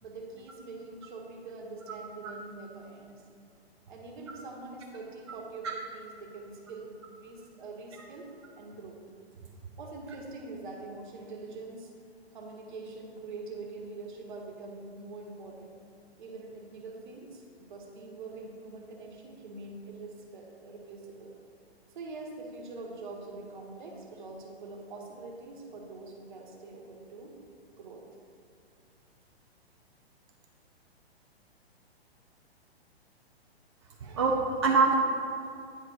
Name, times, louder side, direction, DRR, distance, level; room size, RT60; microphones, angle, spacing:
voice 1, 0.0-3.2 3.9-8.3 8.6-9.0 9.8-11.9 12.3-15.7 16.2-21.3 21.9-27.4 27.8-28.0, right 3 dB, 50° right, 0 dB, 1.2 m, -44 dB
voice 2, 34.0-34.9, right 4 dB, 30° right, -1 dB, 0.4 m, -25 dB
9.3 x 3.2 x 4.3 m, 2.4 s
figure-of-eight pair, 120°, 32 cm